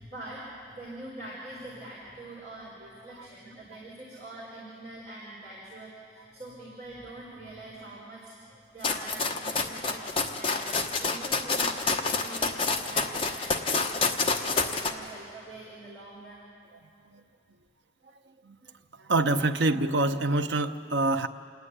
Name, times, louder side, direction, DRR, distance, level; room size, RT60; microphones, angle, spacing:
voice 1, 0.0-8.3 8.7-10.7 11.0-16.4, right 1 dB, 40° right, -7 dB, 4.4 m, -44 dB
sound 1, 8.8-14.9, left 4 dB, 30° left, 1.0 m, -28 dB
voice 2, 19.1-21.3, right 2 dB, 75° right, 8 dB, 0.8 m, -25 dB
27.5 x 9.5 x 9.9 m, 2.4 s
head